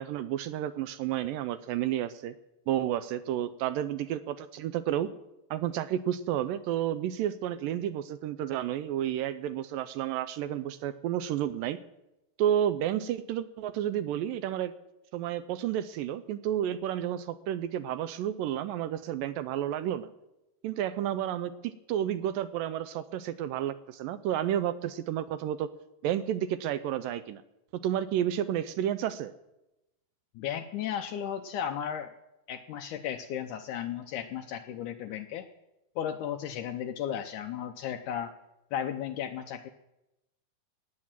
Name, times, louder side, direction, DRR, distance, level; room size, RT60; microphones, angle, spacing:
voice 1, 0.0-2.3 2.7-5.1 5.5-11.8 12.4-14.7 15.1-20.1 20.6-25.7 26.0-27.4 27.8-29.3, right 11 dB, 80° right, 12 dB, 2.1 m, -31 dB
voice 2, 30.4-32.1 32.5-35.5 36.0-38.3 38.7-39.7, left 9 dB, 90° left, 6 dB, 1.7 m, -35 dB
18.0 x 8.7 x 7.4 m, 0.92 s
omnidirectional pair, 4.5 m